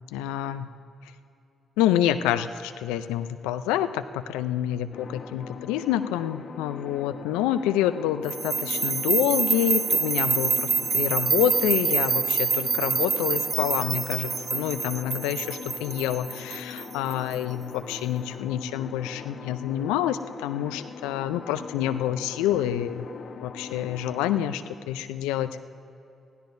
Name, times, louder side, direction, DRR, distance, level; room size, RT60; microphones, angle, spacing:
voice 1, 0.1-0.7 1.8-23.1 23.4-25.6, left 11 dB, 85° left, 11 dB, 0.5 m, -27 dB
sound 1, 4.9-24.5, left 5 dB, 60° left, 1.1 m, -41 dB
sound 2, 8.3-17.3, right 5 dB, 45° right, 0.4 m, -26 dB
22.0 x 16.0 x 2.7 m, 2.7 s
hypercardioid pair, 50°, 0 cm